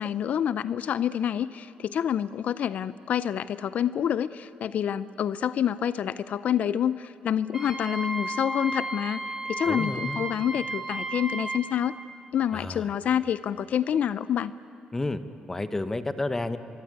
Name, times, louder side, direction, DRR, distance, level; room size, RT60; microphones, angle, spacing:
voice 1, 0.0-9.2 9.5-11.9 12.3-14.5, left 9 dB, 60° left, 16 dB, 0.5 m, -27 dB
Wind instrument woodwind instrument, 7.5-11.6, right 2 dB, 15° right, 5.0 m, -33 dB
voice 2, 9.6-10.2 12.5-12.9 14.9-15.2 15.5-16.6, left 2 dB, 15° left, 11 dB, 1.1 m, -30 dB
24.5 x 24.0 x 9.6 m, 2.9 s
cardioid pair, 120°, 3 cm